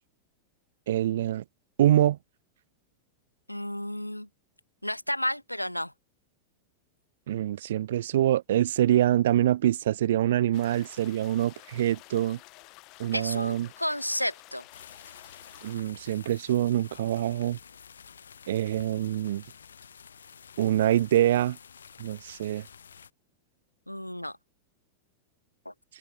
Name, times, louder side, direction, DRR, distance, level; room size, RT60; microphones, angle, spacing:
voice 1, 0.9-1.4 1.8-2.2 7.3-12.4 13.0-13.7 15.6-17.6 18.5-19.4 20.6-21.6 22.0-22.7, right 12 dB, 60° right, 0.4 m, -25 dB
voice 2, 3.5-4.3 4.8-5.9 13.1-14.6 23.9-24.4 25.7-25.8, left 1 dB, 90° left, 0.5 m, -32 dB
sound 1, 10.5-15.7, left 25 dB, 40° left, 2.4 m, -51 dB
sound 2, 14.7-23.1, left 7 dB, 70° left, 2.9 m, -50 dB
figure-of-eight pair, 90°, 0 cm